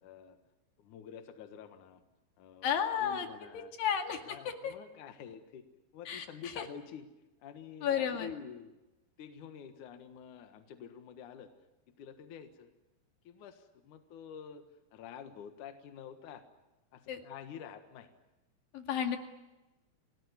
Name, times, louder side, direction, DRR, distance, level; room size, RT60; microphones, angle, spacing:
voice 1, 0.0-0.4 0.8-2.0 2.4-2.7 3.0-3.7 4.2-5.6 5.9-7.1 7.4-8.7 9.2-11.5 11.9-12.7 13.2-14.7 14.9-16.4 16.9-18.1, left 8 dB, 75° left, 8 dB, 1.8 m, -48 dB
voice 2, 2.6-3.3 3.8-4.4 4.6-4.7 6.1-6.3 6.6-6.7 7.8-8.3 17.1-17.2 18.7-19.2, left 8 dB, 55° left, 5 dB, 3.3 m, -32 dB
29.0 x 19.0 x 9.7 m, 1.0 s
omnidirectional pair, 5.9 m